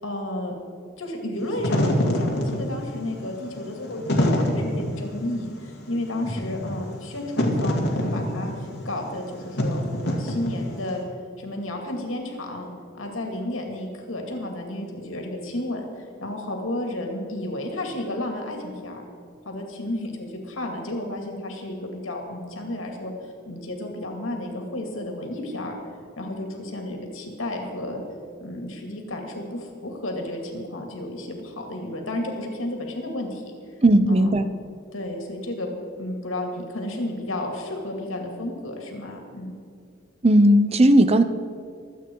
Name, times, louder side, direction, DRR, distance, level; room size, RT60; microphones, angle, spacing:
voice 1, 0.0-0.5 1.0-11.0 11.4-19.0 19.4-25.8 26.2-28.0 28.4-33.5 34.1-34.3 34.9-35.7 36.0-39.5, left 1 dB, 80° left, 2 dB, 2.5 m, -32 dB
Wind / Fire, 1.4-10.9, left 1 dB, 55° left, 2.4 m, -26 dB
voice 2, 33.8-34.5 40.2-41.2, right 1 dB, 30° right, 11 dB, 0.6 m, -16 dB
23.5 x 8.4 x 4.7 m, 2.3 s
head